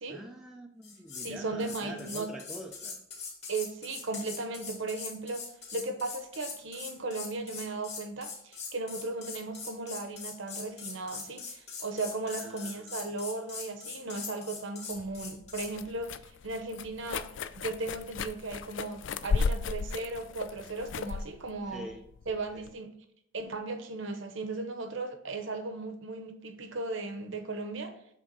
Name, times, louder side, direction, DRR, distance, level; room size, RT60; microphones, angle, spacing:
voice 1, 0.1-3.0 12.2-13.1 21.7-22.0 22.5-22.8, equal, 5° right, 0 dB, 0.5 m, -45 dB
sound 1, 0.8-1.3 1.6-15.7, left 5 dB, 30° left, 2.0 m, -42 dB
voice 2, 1.2-2.3 3.5-5.4 5.7-16.1 16.4-17.3 17.5-21.9 22.3-22.9 23.3-28.0, right 3 dB, 60° right, 6 dB, 0.9 m, -36 dB
sound 2, 15.0-22.7, left 5 dB, 55° left, 0.3 m, -35 dB
7.6 x 3.6 x 5.3 m, 0.71 s
head